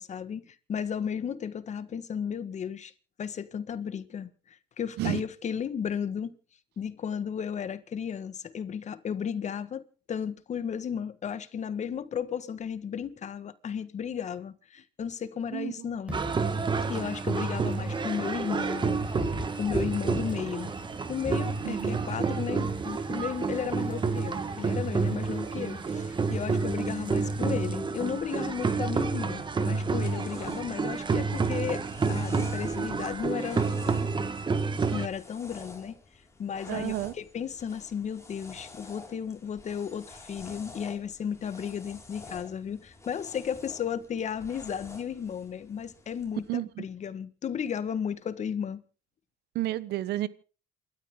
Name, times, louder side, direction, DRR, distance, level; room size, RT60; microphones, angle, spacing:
voice 1, 0.0-2.9 3.2-6.3 6.8-16.2 16.9-19.3 19.5-20.7 21.1-33.6 34.9-36.0 36.4-48.8, left 7 dB, 45° left, 1.5 m, -34 dB
Wind / Rain, 16.1-27.7, equal, 5° right, 5.5 m, -43 dB
sound 1, 16.1-35.1, right 4 dB, 25° right, 1.7 m, -29 dB
voice 2, 21.6-22.0 23.6-23.8 36.7-37.1 46.5-46.9 49.5-50.3, right 15 dB, 75° right, 1.2 m, -31 dB
sound 2, 29.5-46.5, left 3 dB, 15° left, 5.4 m, -49 dB
28.5 x 13.0 x 3.8 m
cardioid pair, 110°, 17 cm